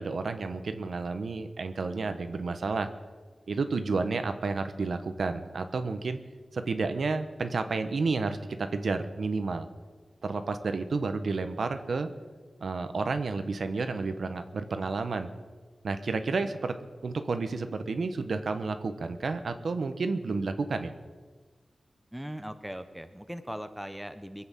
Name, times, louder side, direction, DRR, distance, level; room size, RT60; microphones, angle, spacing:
voice 1, 0.0-2.9 3.5-6.2 6.5-9.7 10.2-12.1 12.6-15.3 15.8-16.7 17.0-20.9, right 4 dB, 70° right, 9 dB, 1.0 m, -31 dB
voice 2, 22.1-24.5, equal, 5° right, 9 dB, 0.8 m, -39 dB
22.5 x 7.9 x 7.5 m, 1.4 s
wide cardioid pair, 125°, 0 cm